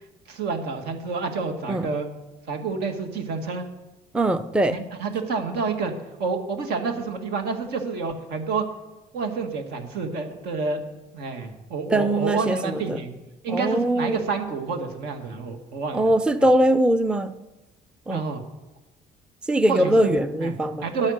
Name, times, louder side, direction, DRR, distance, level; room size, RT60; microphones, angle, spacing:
voice 1, 0.3-2.1 2.5-3.7 4.7-5.9 6.2-8.7 9.1-10.8 11.1-13.1 13.4-16.1 18.1-18.4 19.7-20.5 20.8-21.1, right 4 dB, 75° right, 5 dB, 1.8 m, -28 dB
voice 2, 4.1-4.8 11.9-13.0 13.5-14.2 15.9-17.4 18.1-18.2 19.4-20.8, right 1 dB, 5° right, 12 dB, 0.5 m, -21 dB
10.5 x 9.0 x 6.5 m, 1.0 s
cardioid pair, 110°, 17 cm